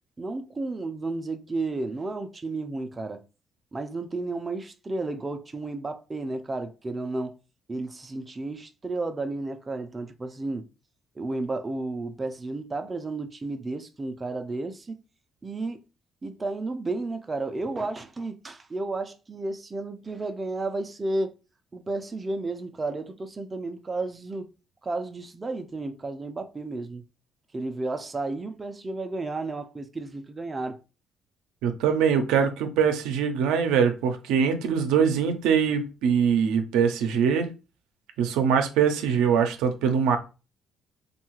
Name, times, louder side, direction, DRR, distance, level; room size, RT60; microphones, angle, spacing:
voice 1, 0.2-3.2 3.7-7.4 7.7-10.7 11.2-14.9 15.4-15.8 16.2-21.3 21.7-24.5 24.8-27.0 27.5-30.8, right 2 dB, 25° right, 0.4 m, -32 dB
voice 2, 31.6-37.5 38.2-40.2, right 7 dB, 90° right, 0.5 m, -23 dB
2.7 x 2.3 x 3.0 m
cardioid pair, 90°, 0 cm